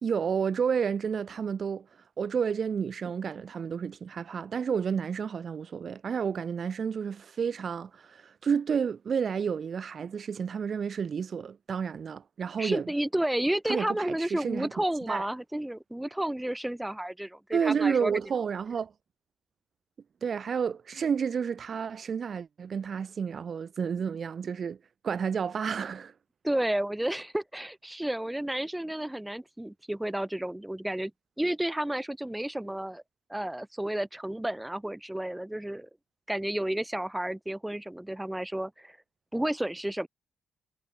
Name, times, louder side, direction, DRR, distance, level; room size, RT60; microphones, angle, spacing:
voice 1, 0.0-1.9 2.2-12.9 13.6-14.7 15.1-15.3 17.5-18.9 20.2-24.8 25.0-26.1, right 6 dB, 45° right, 1.4 m, -30 dB
voice 2, 12.6-18.1 26.4-31.1 31.4-33.0 33.3-35.9 36.3-39.0 39.3-40.1, right 1 dB, 10° right, 2.0 m, -31 dB
figure-of-eight pair, 40°, 0 cm